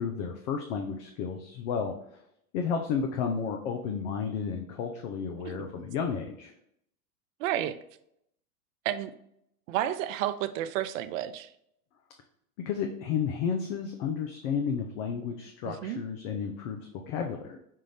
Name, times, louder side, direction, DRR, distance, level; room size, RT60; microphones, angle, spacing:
voice 1, 0.0-1.9 2.5-6.5 12.7-17.6, left 6 dB, 55° left, 3 dB, 0.7 m, -32 dB
voice 2, 7.4-7.8 8.8-9.1 9.7-11.5 15.6-16.0, right 12 dB, 60° right, 12 dB, 0.5 m, -31 dB
5.5 x 2.5 x 3.3 m, 0.74 s
hypercardioid pair, 105°, 44 cm